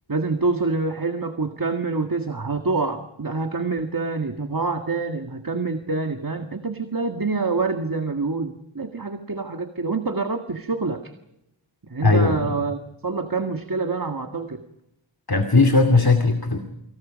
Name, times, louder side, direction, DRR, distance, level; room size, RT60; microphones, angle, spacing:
voice 1, 0.1-11.1 11.9-14.6, right 3 dB, 45° right, 6 dB, 1.8 m, -26 dB
voice 2, 12.0-12.3 15.3-16.6, left 3 dB, 50° left, 6 dB, 2.5 m, -17 dB
29.0 x 26.5 x 5.2 m, 0.86 s
wide cardioid pair, 65°, 46 cm